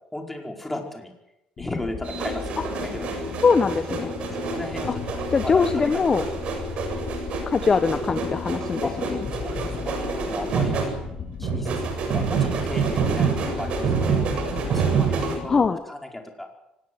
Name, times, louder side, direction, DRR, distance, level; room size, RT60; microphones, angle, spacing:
voice 1, 0.1-1.1 1.6-3.2 4.3-6.1 8.8-8.9 9.3-10.8 11.4-14.2 14.7-16.5, left 1 dB, 5° left, 2 dB, 4.9 m, -35 dB
sound 1, 1.6-15.7, left 7 dB, 45° left, 1.7 m, -35 dB
sound 2, 2.0-15.4, right 5 dB, 60° right, 7.8 m, -27 dB
voice 2, 3.4-4.1 4.9-5.0 5.3-6.2 7.5-8.8 15.5-15.8, left 5 dB, 30° left, 10 dB, 1.2 m, -21 dB
24.5 x 19.0 x 8.0 m, 0.88 s
cardioid pair, 120°, 2 cm